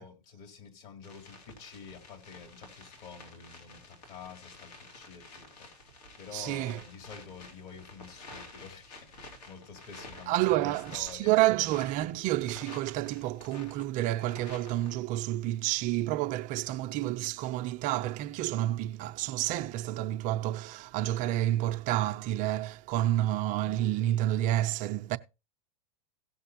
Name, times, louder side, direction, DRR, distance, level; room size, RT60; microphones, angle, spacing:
voice 1, 0.0-11.6, left 6 dB, 50° left, 3.4 m, -49 dB
sound 1, 1.0-15.0, left 2 dB, 80° left, 3.5 m, -50 dB
voice 2, 6.3-6.8 10.3-25.2, right 14 dB, 40° right, 0.5 m, -29 dB
17.0 x 6.7 x 2.7 m
hypercardioid pair, 115°, 20 cm